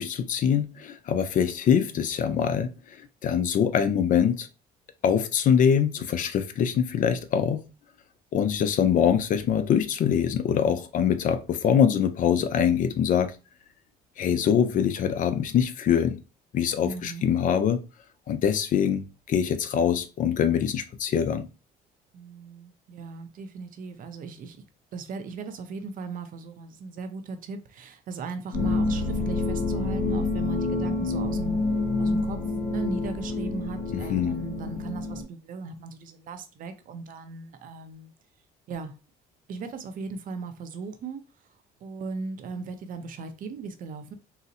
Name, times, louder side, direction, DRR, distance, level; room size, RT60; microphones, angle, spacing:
voice 1, 0.0-4.5 5.0-7.6 8.3-13.4 14.2-16.2 16.5-17.8 18.3-21.5 33.9-34.4, left 8 dB, 50° left, 0.4 m, -24 dB
voice 2, 16.8-17.3 22.1-24.6 24.9-31.6 32.0-32.4 32.7-38.1 38.7-38.9 39.5-41.2 41.8-44.1, right 4 dB, 55° right, 0.6 m, -37 dB
sound 1, 28.5-35.2, left 3 dB, 75° left, 1.7 m, -28 dB
3.8 x 2.1 x 2.6 m
cardioid pair, 110°, 17 cm